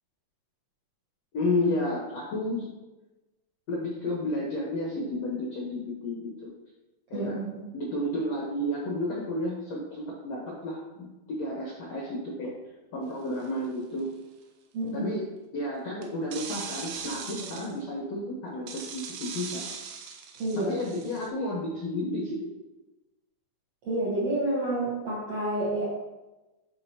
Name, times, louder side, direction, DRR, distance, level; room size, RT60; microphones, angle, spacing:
voice 1, 1.3-2.7 3.7-6.5 7.1-7.4 7.7-12.5 12.9-14.1 14.9-15.3 15.5-19.6 20.5-22.5, left 1 dB, 85° left, -4 dB, 1.4 m, -32 dB
voice 2, 7.1-7.7 14.7-15.1 20.4-20.7 23.8-25.9, right 1 dB, 60° right, -8 dB, 1.6 m, -29 dB
sound 1, 13.4-13.7 16.0-17.7 18.7-21.3, right 6 dB, 85° right, 3.0 m, -39 dB
10.5 x 4.7 x 2.9 m, 1.1 s
omnidirectional pair, 5.0 m